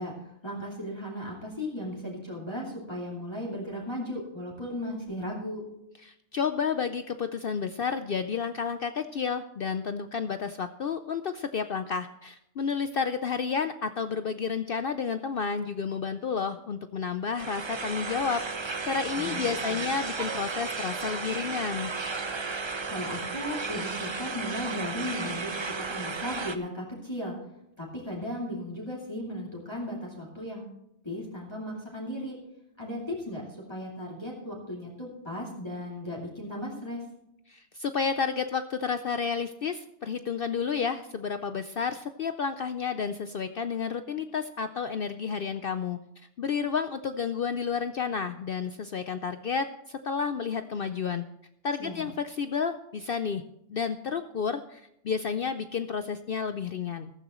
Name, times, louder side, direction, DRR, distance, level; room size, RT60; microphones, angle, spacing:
voice 1, 0.0-5.6 19.1-19.8 22.9-27.4 27.8-30.8 31.0-32.4 32.8-37.0 51.8-52.1, left 1 dB, 20° left, -5 dB, 2.7 m, -36 dB
voice 2, 6.1-21.9 37.5-46.0 46.4-51.2 51.6-53.4 53.7-57.1, left 6 dB, 60° left, 9 dB, 0.6 m, -31 dB
sound 1, 17.4-26.6, right 4 dB, 35° right, 0.5 m, -34 dB
15.0 x 13.5 x 3.0 m, 0.80 s
omnidirectional pair, 1.4 m